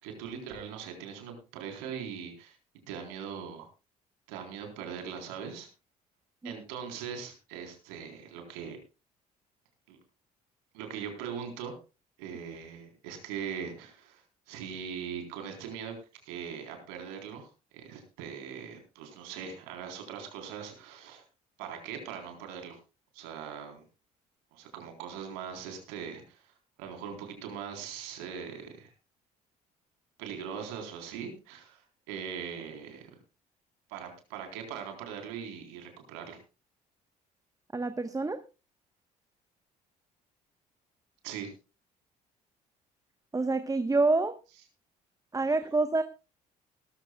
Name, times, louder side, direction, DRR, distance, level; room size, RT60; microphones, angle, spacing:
voice 1, 0.0-2.6 2.9-3.7 4.3-5.7 6.4-8.8 9.9-10.0 10.7-11.8 12.2-16.0 16.2-21.2 21.6-22.8 23.1-23.8 24.5-28.9 30.2-33.1 33.9-36.4 41.2-41.5, right 7 dB, 75° right, 4 dB, 3.8 m, -41 dB
voice 2, 37.7-38.4 43.3-44.4 45.3-46.0, right 3 dB, 15° right, 10 dB, 1.1 m, -27 dB
18.5 x 13.5 x 2.3 m, 0.30 s
hypercardioid pair, 55°, 20 cm